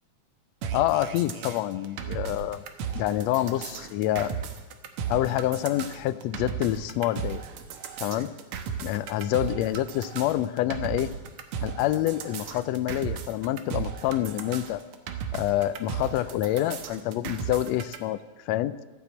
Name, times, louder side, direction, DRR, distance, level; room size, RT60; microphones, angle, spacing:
sound 1, 0.6-18.0, right 7 dB, 70° right, 2.3 m, -36 dB
voice 1, 0.7-2.6 2.9-4.3 5.1-7.4 8.0-8.3 8.8-11.1 11.6-14.8 15.3-18.2 18.5-18.7, left 14 dB, 80° left, 14 dB, 1.5 m, -27 dB
14.5 x 10.5 x 8.2 m, 1.2 s
omnidirectional pair, 3.6 m